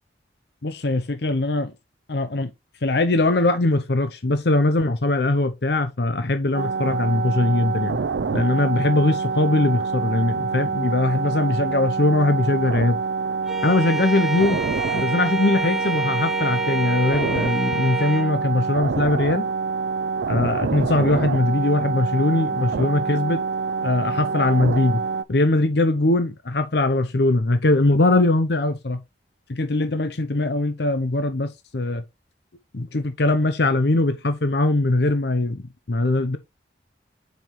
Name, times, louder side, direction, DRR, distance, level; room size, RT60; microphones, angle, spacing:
voice 1, 0.6-1.7 2.1-2.5 2.8-8.0 8.3-13.0 13.6-14.6 14.9-19.5 20.3-23.4 23.8-25.0 25.3-29.0 29.5-32.0 32.7-35.6 35.9-36.4, left 2 dB, 65° left, 0.8 m, -21 dB
sound 1, 6.5-25.2, right 5 dB, 75° right, 0.5 m, -26 dB
Bowed string instrument, 13.5-18.3, right 1 dB, ahead, 0.3 m, -29 dB
7.3 x 5.9 x 3.1 m
head